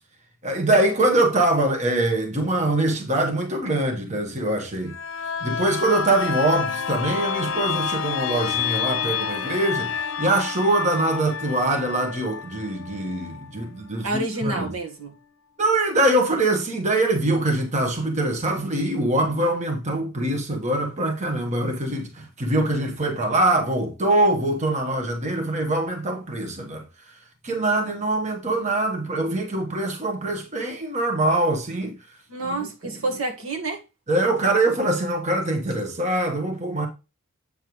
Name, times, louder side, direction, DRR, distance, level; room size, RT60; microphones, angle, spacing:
voice 1, 0.4-4.9 5.4-14.7 15.6-27.2 27.4-32.0 32.4-32.6 32.8-32.9 34.1-36.9, right 2 dB, 35° right, 1.2 m, -23 dB
sound 1, 4.9-14.4 14.8-14.9, left 7 dB, 60° left, 0.7 m, -29 dB
voice 2, 14.0-15.1 32.3-33.8, right 2 dB, 80° right, 1.6 m, -28 dB
8.2 x 6.5 x 3.1 m
head